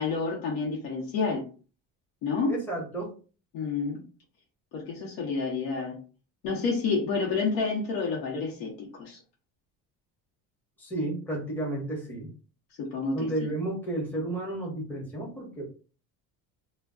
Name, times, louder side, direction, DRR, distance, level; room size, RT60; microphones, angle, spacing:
voice 1, 0.0-1.4 2.2-2.5 3.5-4.0 4.7-6.0 6.4-9.2 12.8-13.3, left 4 dB, 85° left, -2 dB, 0.9 m, -29 dB
voice 2, 2.5-3.2 10.8-12.3 13.1-15.6, right 1 dB, 5° left, -3 dB, 0.9 m, -32 dB
2.2 x 2.1 x 3.5 m, 0.36 s
cardioid pair, 135°, 36 cm